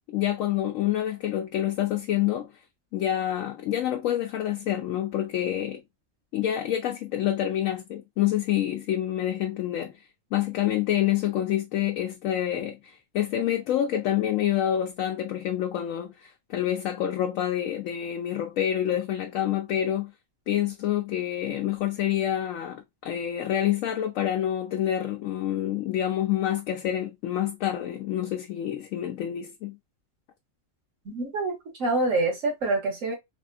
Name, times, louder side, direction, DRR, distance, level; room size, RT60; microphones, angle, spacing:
voice 1, 0.1-2.5 2.9-5.8 6.3-9.9 10.3-20.1 20.5-29.8, left 11 dB, 80° left, 1.0 m, -27 dB
voice 2, 31.0-33.1, right 2 dB, 80° right, 1.5 m, -26 dB
3.5 x 2.5 x 2.4 m
omnidirectional pair, 1.4 m